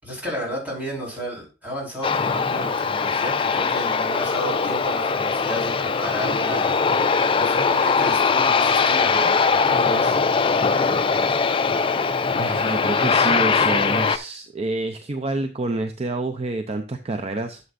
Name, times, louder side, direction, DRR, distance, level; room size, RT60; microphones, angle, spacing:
voice 1, 0.0-10.2, equal, 10° right, -4 dB, 4.3 m, -33 dB
Aircraft, 2.0-14.2, left 5 dB, 30° left, 0.4 m, -21 dB
voice 2, 12.4-17.6, right 2 dB, 35° right, 7 dB, 0.6 m, -28 dB
11.0 x 6.9 x 2.5 m, 0.32 s
head